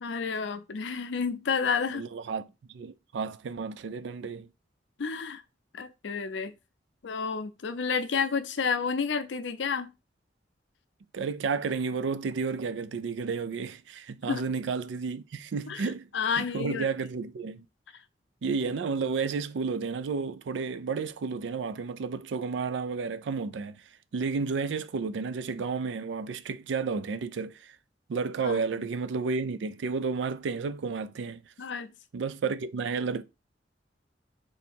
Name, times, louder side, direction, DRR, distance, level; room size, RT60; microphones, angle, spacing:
voice 1, 0.0-2.1 5.0-5.4 5.7-6.5 7.0-9.9 14.3-14.4 15.7-15.8 16.1-16.9 28.4-28.6 31.6-31.9, left 5 dB, 80° left, 0.5 m, -30 dB
voice 2, 1.9-4.5 11.1-16.1 16.4-17.6 18.4-23.8 24.1-27.7 28.1-31.4 32.1-33.2, right 5 dB, 80° right, 0.4 m, -32 dB
3.2 x 2.8 x 4.3 m
head